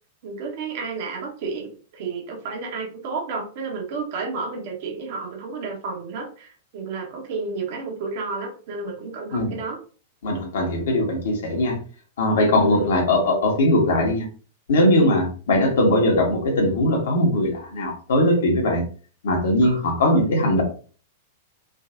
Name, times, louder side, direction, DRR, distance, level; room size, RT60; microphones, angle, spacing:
voice 1, 0.2-9.8 12.5-13.0 15.0-15.1 19.6-19.8, right 4 dB, 50° right, 2 dB, 1.4 m, -31 dB
voice 2, 10.2-11.8 12.2-14.2 14.7-18.8 19.2-20.6, left 1 dB, 60° left, 1 dB, 1.6 m, -20 dB
5.4 x 3.2 x 2.6 m, 0.39 s
figure-of-eight pair, 95°, 0 cm